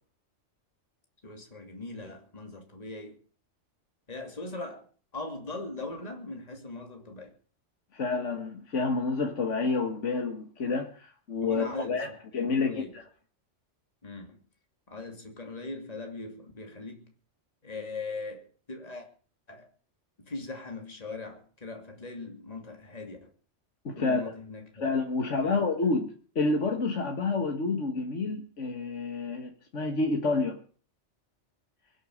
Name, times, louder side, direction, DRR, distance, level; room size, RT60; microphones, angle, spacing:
voice 1, 1.2-3.2 4.1-4.9 5.1-7.3 11.4-12.2 12.5-13.0 14.0-14.4 14.9-17.1 17.6-19.1 19.5-19.7 20.3-23.3 24.0-24.9 25.4-25.6, left 3 dB, 30° left, 2.8 m, -40 dB
voice 2, 7.9-12.1 12.3-13.0 23.9-24.3 24.8-30.6, left 3 dB, 80° left, 2.0 m, -29 dB
23.0 x 8.9 x 6.5 m
omnidirectional pair, 1.2 m